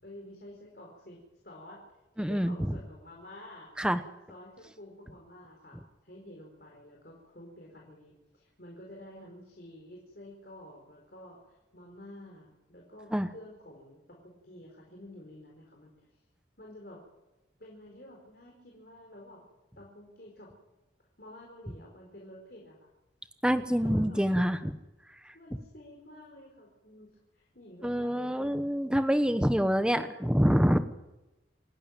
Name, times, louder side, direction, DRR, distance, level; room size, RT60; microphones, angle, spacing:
voice 1, 0.0-3.7 4.3-16.2 16.6-17.0 17.6-19.4 19.7-20.5 21.2-22.9 23.4-24.2 25.3-28.6 29.1-30.4, left 1 dB, 55° left, -1 dB, 4.9 m, -50 dB
voice 2, 2.2-2.6 3.8-4.0 13.1-13.3 23.4-24.8 27.8-30.9, equal, 5° right, 10 dB, 1.0 m, -26 dB
28.0 x 11.5 x 9.1 m, 1.0 s
head